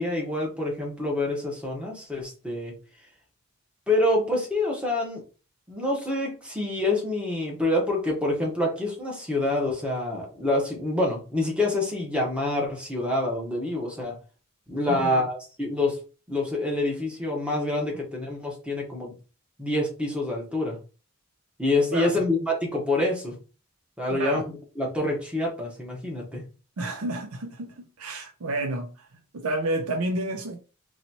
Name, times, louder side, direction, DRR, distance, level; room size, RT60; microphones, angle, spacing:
voice 1, 0.0-2.7 3.9-5.2 5.7-14.2 14.7-16.0 16.3-19.1 19.6-20.8 21.6-23.4 24.0-24.4 24.8-26.4, left 2 dB, 5° right, 1.2 m, -26 dB
voice 2, 14.9-15.3 21.9-22.2 24.1-24.4 26.8-29.1 29.3-30.6, right 2 dB, 85° right, 0.6 m, -30 dB
4.0 x 3.1 x 2.8 m
head